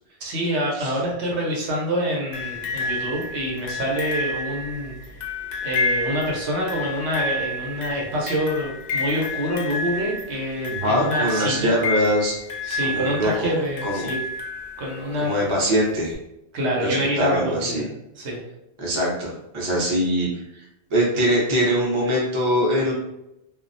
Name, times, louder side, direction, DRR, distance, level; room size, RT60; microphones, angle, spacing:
voice 1, 0.2-5.0 5.2-5.3 5.6-11.7 12.6-14.2 14.8-15.3 16.5-17.8 18.2-18.4, equal, 80° right, -2 dB, 1.0 m, -26 dB
sound 1, 2.3-15.2 16.1-16.2, left 2 dB, 55° left, 0.5 m, -30 dB
voice 2, 10.7-12.4 12.8-13.5 13.8-14.1 15.2-16.2 16.8-17.8 18.8-22.9, equal, 35° right, -4 dB, 0.6 m, -23 dB
2.3 x 2.1 x 2.6 m, 0.86 s
omnidirectional pair, 1.1 m